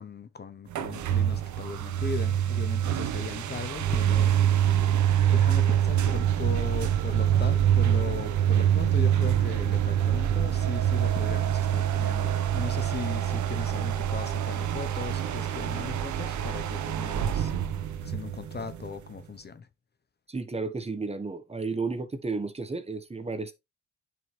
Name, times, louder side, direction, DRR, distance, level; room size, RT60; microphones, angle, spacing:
voice 1, 0.0-4.4 5.2-17.5 18.0-19.7, left 5 dB, 35° left, 1.0 m, -38 dB
sound 1, 0.7-19.2, right 10 dB, 70° right, 1.1 m, -25 dB
voice 2, 20.3-23.5, right 4 dB, 20° right, 1.3 m, -32 dB
9.1 x 5.3 x 3.3 m
cardioid pair, 90°, 30 cm